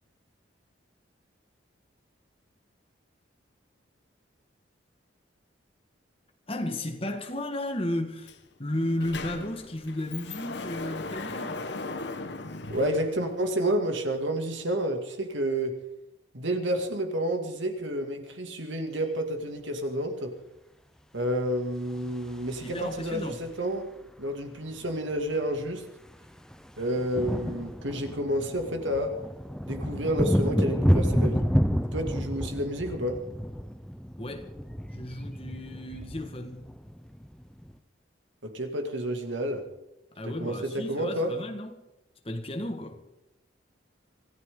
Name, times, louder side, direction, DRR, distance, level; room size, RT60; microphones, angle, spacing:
voice 1, 6.5-8.3 8.6-11.7 22.6-23.4 34.2-34.5 34.9-36.7 40.1-41.7 42.2-43.0, left 1 dB, 30° left, 1.8 m, -33 dB
Sliding door, 8.3-8.4 8.7-13.7, left 3 dB, 60° left, 1.2 m, -38 dB
voice 2, 12.7-15.8 16.3-20.3 21.1-23.9 24.2-25.8 26.8-29.1 29.7-31.5 31.9-33.2 38.4-39.6 40.3-41.3, right 1 dB, 75° right, 2.6 m, -30 dB
sound 1, 21.9-23.5 24.8-24.9 25.1-25.3 25.6-37.7, equal, 5° left, 0.7 m, -30 dB
25.5 x 14.5 x 3.9 m
head